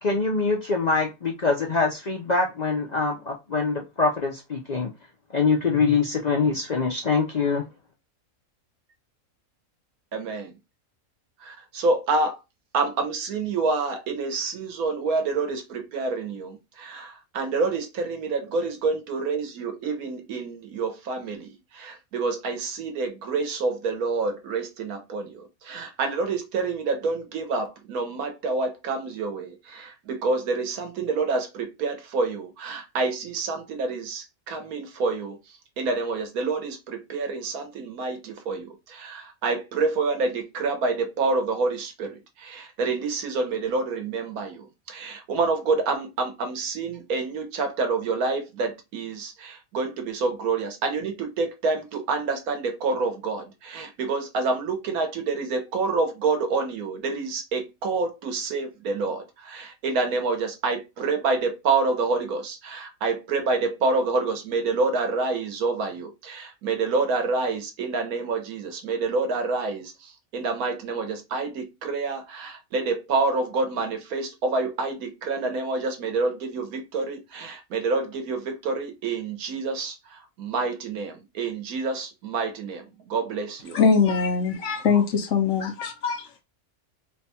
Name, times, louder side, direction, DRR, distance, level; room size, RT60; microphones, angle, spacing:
voice 1, 0.0-4.9 5.3-7.6, left 4 dB, 45° left, 0.5 m, -24 dB
voice 2, 10.1-10.6 11.4-12.4 12.7-83.8, right 3 dB, 85° right, 1.4 m, -28 dB
voice 3, 83.7-86.3, left 5 dB, 65° left, 1.0 m, -22 dB
3.4 x 2.3 x 4.2 m
omnidirectional pair, 1.5 m